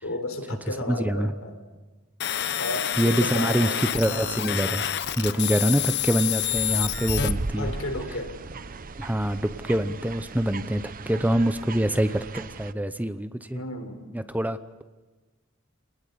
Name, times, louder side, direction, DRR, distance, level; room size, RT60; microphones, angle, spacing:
voice 1, 0.0-1.6 2.6-3.9 7.6-8.4 13.5-14.1, left 1 dB, 80° left, 5 dB, 4.1 m, -33 dB
voice 2, 0.9-1.3 3.0-4.8 5.2-7.7 9.0-13.6 14.1-14.8, right 1 dB, 10° right, 11 dB, 0.8 m, -25 dB
sound 1, 2.2-7.3, left 11 dB, 55° left, 1.0 m, -28 dB
sound 2, 6.4-12.7, right 3 dB, 45° right, 0.7 m, -37 dB
27.5 x 19.5 x 8.4 m, 1.2 s
head